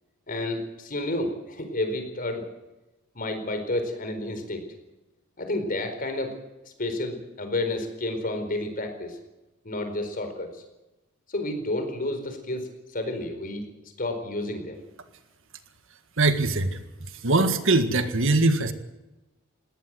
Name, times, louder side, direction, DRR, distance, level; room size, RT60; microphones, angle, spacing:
voice 1, 0.3-2.4 3.1-4.6 5.4-6.3 6.6-9.2 9.6-10.5 11.3-13.7 14.0-14.8, left 2 dB, 40° left, 7 dB, 4.5 m, -30 dB
voice 2, 16.2-16.8 17.2-18.7, right 2 dB, 65° right, 9 dB, 1.8 m, -22 dB
20.5 x 18.0 x 7.9 m, 1.0 s
head